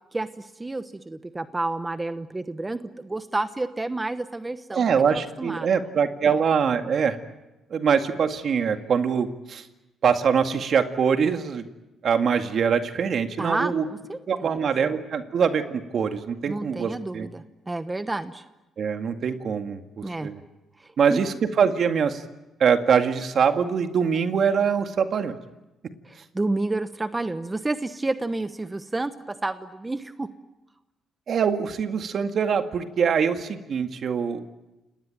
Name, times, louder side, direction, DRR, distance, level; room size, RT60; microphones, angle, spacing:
voice 1, 0.1-5.7 13.4-14.7 16.5-18.4 20.0-20.3 20.8-21.2 26.0-30.3, right 2 dB, 20° right, 11 dB, 1.1 m, -30 dB
voice 2, 4.7-7.2 7.7-9.7 10.0-11.6 12.0-13.9 14.3-17.3 18.8-20.4 21.0-22.2 22.6-25.4 31.3-34.5, right 6 dB, 55° right, 7 dB, 2.1 m, -23 dB
29.5 x 18.5 x 9.1 m, 1.0 s
cardioid pair, 90°, 0 cm